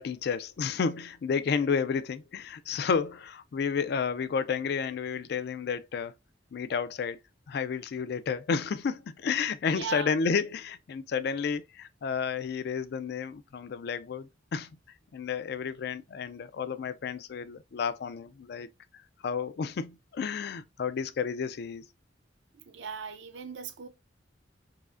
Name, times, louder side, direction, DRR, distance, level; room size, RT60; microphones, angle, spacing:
voice 1, 0.0-6.1 6.5-7.2 7.5-14.7 15.1-18.7 19.2-21.9, left 6 dB, 55° left, 0.3 m, -31 dB
voice 2, 9.7-10.2 22.5-23.9, right 6 dB, 70° right, 0.5 m, -39 dB
4.7 x 2.1 x 2.4 m
head